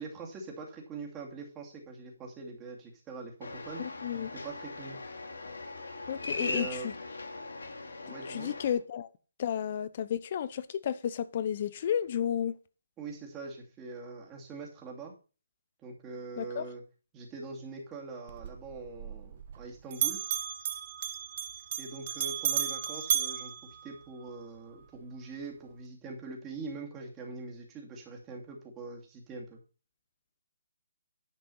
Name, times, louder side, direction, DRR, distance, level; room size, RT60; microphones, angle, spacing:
voice 1, 0.0-3.8 4.4-5.0 6.4-6.9 8.1-8.5 13.0-15.1 15.8-16.8 17.1-20.2 21.8-29.6, right 3 dB, 15° right, 2.5 m, -43 dB
sound 1, 3.4-8.7, left 2 dB, 85° left, 2.7 m, -40 dB
voice 2, 3.8-4.3 6.1-6.9 8.1-9.1 9.4-12.5 16.4-16.7, left 9 dB, 40° left, 0.8 m, -32 dB
Bell, 18.3-19.7 19.9-24.4, right 9 dB, 40° right, 0.9 m, -34 dB
10.5 x 5.4 x 5.5 m
hypercardioid pair, 155°, 0 cm